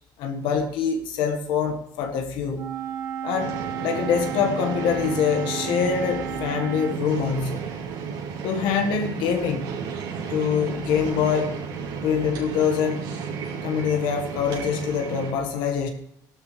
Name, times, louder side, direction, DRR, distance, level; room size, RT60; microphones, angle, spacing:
voice 1, 0.2-2.7 3.2-7.7 8.4-9.9 10.3-11.5 12.0-13.0 13.6-15.9, left 7 dB, 80° left, 1.7 m, -25 dB
Wind instrument woodwind instrument, 2.5-7.0, right 6 dB, 55° right, 1.9 m, -33 dB
sound 1, 3.3-15.3, right 6 dB, 80° right, 4.4 m, -33 dB
17.0 x 12.0 x 3.4 m
cardioid pair, 170°, 8 cm